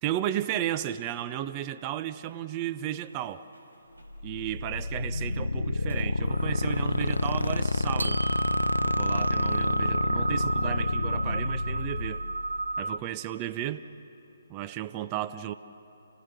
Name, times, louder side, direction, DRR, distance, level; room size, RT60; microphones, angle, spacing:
voice 1, 0.0-3.5 4.2-8.2 8.8-12.2 12.8-13.8 14.5-15.5, right 12 dB, 25° right, 11 dB, 0.6 m, -34 dB
sound 1, 3.0-10.3, right 1 dB, 85° right, 4.0 m, -52 dB
sound 2, 4.1-13.0, left 2 dB, 80° left, 0.6 m, -29 dB
sound 3, 6.3-13.0, right 3 dB, 70° right, 0.4 m, -33 dB
29.0 x 16.0 x 6.9 m, 3.0 s
figure-of-eight pair, 135°, 0 cm